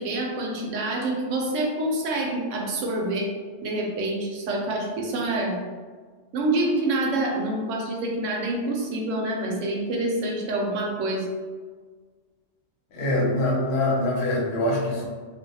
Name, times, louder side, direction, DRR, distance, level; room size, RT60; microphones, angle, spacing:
voice 1, 0.0-3.3 3.6-5.6 6.3-11.3, right 2 dB, 85° right, -1 dB, 0.9 m, -27 dB
voice 2, 12.9-15.1, left 1 dB, 65° left, -3 dB, 0.9 m, -24 dB
2.5 x 2.1 x 2.7 m, 1.5 s
omnidirectional pair, 1.3 m